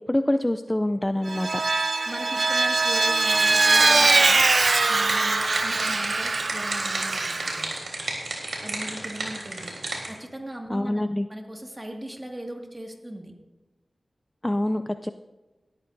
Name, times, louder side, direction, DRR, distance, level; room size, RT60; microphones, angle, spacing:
voice 1, 0.0-1.6 10.7-11.3 14.4-15.1, left 1 dB, 15° left, 9 dB, 0.4 m, -25 dB
Vehicle, 1.3-7.6, right 3 dB, 55° right, 0.4 m, -22 dB
voice 2, 2.1-4.4 4.9-7.8 8.6-9.8 10.1-13.3, right 1 dB, 20° right, 2 dB, 2.0 m, -38 dB
sound 1, 3.2-10.1, right 2 dB, 90° right, 3.4 m, -33 dB
18.5 x 13.0 x 2.6 m, 1.1 s
wide cardioid pair, 85°, 0 cm